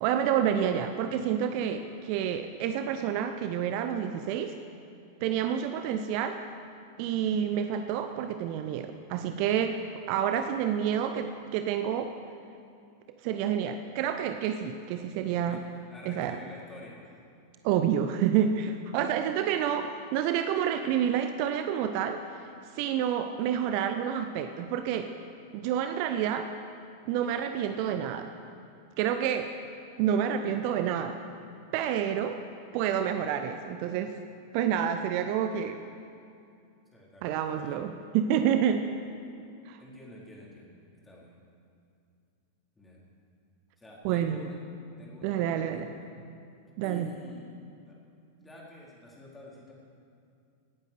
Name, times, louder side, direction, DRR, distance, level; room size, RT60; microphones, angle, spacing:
voice 1, 0.0-4.6 5.2-6.4 7.0-9.8 10.1-12.1 13.2-15.6 16.1-16.4 17.6-22.2 22.7-25.1 25.5-26.5 27.1-28.3 29.0-29.5 30.0-31.2 31.7-32.4 32.7-34.1 34.5-35.8 37.2-38.8 39.7-39.8 44.0-44.4 45.2-45.9 46.8-47.1, right 9 dB, 45° right, 8 dB, 0.7 m, -28 dB
voice 2, 15.4-17.1 36.9-37.8 39.8-40.8 41.0-41.4 42.8-43.0 43.8-44.6 45.0-46.1 46.8-47.5 47.9-48.0 48.4-49.7, left 1 dB, 10° left, -4 dB, 4.3 m, -49 dB
18.0 x 9.1 x 6.9 m, 2.5 s
figure-of-eight pair, 90°, 0 cm